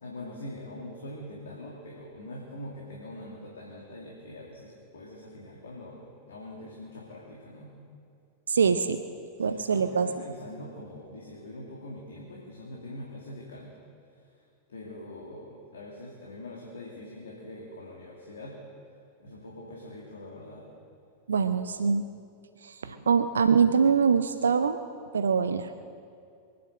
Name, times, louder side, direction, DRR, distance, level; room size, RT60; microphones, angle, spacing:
voice 1, 0.0-7.7 9.4-13.7 14.2-14.4 14.7-18.5 19.2-20.7 22.9-23.1, left 1 dB, 70° left, -2 dB, 2.4 m, -43 dB
voice 2, 8.5-9.0 9.4-10.1 21.3-22.1 22.6-24.8 25.1-25.7, right 6 dB, 70° right, 10 dB, 0.6 m, -24 dB
23.5 x 9.6 x 6.5 m, 2.4 s
figure-of-eight pair, 90°, 0 cm